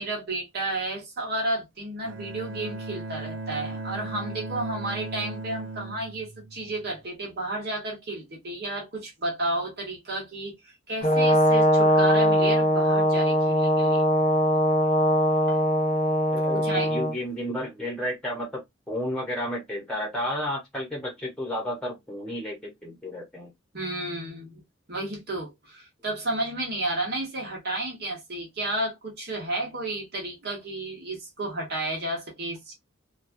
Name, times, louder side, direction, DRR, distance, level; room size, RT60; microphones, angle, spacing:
voice 1, 0.0-14.0 15.5-15.6 16.5-16.9 23.7-24.6 24.9-32.7, right 2 dB, 50° right, 1.4 m, -32 dB
Bowed string instrument, 2.0-7.1, right 3 dB, 65° right, 0.7 m, -37 dB
Brass instrument, 11.0-17.2, equal, 35° left, 0.5 m, -21 dB
voice 2, 16.3-23.5, equal, 5° left, 1.1 m, -32 dB
3.1 x 2.4 x 2.6 m
head